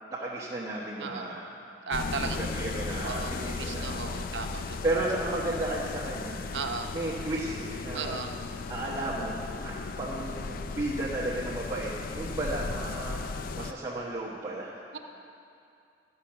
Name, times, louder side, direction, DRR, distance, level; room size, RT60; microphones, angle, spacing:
voice 1, 0.1-1.5 2.2-4.2 4.5-6.4 6.9-8.2 8.7-9.4 9.6-13.2 13.5-15.0, right 1 dB, 25° right, -9 dB, 1.3 m, -34 dB
sound 1, 1.9-13.7, left 4 dB, 55° left, 0.4 m, -36 dB
voice 2, 1.9-2.4 3.0-4.6 6.5-6.9 7.9-8.3, right 4 dB, 85° right, 5 dB, 0.8 m, -35 dB
12.5 x 5.7 x 7.5 m, 2.5 s
head